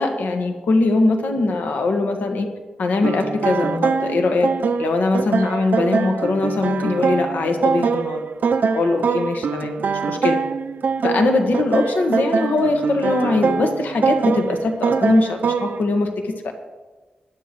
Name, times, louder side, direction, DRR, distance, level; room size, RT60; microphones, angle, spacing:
voice 1, 0.0-2.5 2.8-4.5 4.8-8.2 8.7-10.4 11.0-16.5, left 3 dB, 90° left, 4 dB, 1.5 m, -21 dB
sound 1, 3.0-15.8, right 5 dB, 70° right, 0.6 m, -23 dB
19.5 x 11.5 x 3.1 m, 1.3 s
wide cardioid pair, 125°, 3 cm